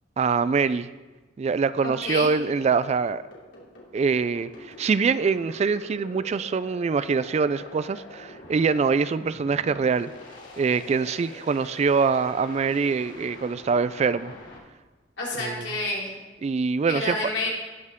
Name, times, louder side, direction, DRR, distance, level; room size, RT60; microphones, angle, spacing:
voice 1, 0.2-0.9 1.4-3.2 3.9-10.1 10.6-14.3 15.4-15.7 16.4-17.2, right 5 dB, 35° right, 15 dB, 0.3 m, -24 dB
voice 2, 1.8-2.3 15.2-16.1 16.9-17.5, left 2 dB, 65° left, -5 dB, 3.5 m, -29 dB
sound 1, 2.0-14.6, left 1 dB, 85° left, 2.9 m, -45 dB
19.0 x 6.6 x 3.6 m, 1.3 s
head